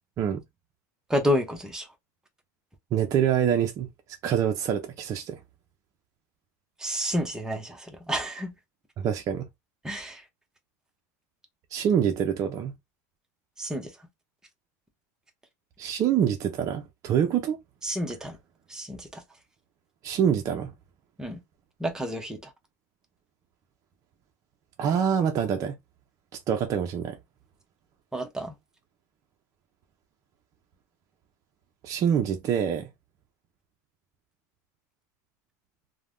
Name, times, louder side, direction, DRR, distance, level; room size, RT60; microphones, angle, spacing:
voice 1, 1.1-1.9 6.8-8.5 9.8-10.2 13.6-13.9 17.8-18.4 18.7-19.2 21.2-21.4 21.8-22.5 28.1-28.6, equal, 5° right, 0.8 m, -30 dB
voice 2, 2.9-3.9 4.2-5.4 9.0-9.4 11.7-12.7 15.8-17.6 20.0-20.7 24.8-25.7 26.5-27.2 31.8-32.9, right 8 dB, 40° right, 0.5 m, -25 dB
3.2 x 2.1 x 2.5 m
supercardioid pair, 115°, 9 cm